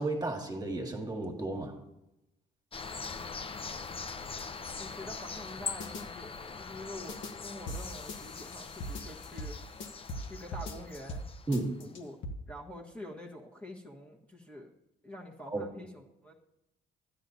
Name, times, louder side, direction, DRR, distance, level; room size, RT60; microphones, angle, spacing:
voice 1, 0.0-1.7 11.5-11.7 15.5-15.7, right 2 dB, 20° right, 2 dB, 1.8 m, -33 dB
sound 1, 2.7-11.9, left 5 dB, 30° left, 0.6 m, -42 dB
voice 2, 3.1-3.9 4.8-9.5 10.2-11.2 11.8-12.2 12.5-14.7 15.0-16.3, left 1 dB, 5° left, -3 dB, 1.4 m, -46 dB
sound 2, 5.8-6.0 7.1-7.3 7.7-10.3 10.5-11.2 11.5-12.3, left 1 dB, 70° left, 1.3 m, -40 dB
13.0 x 10.5 x 2.8 m, 0.90 s
cardioid pair, 90°, 20 cm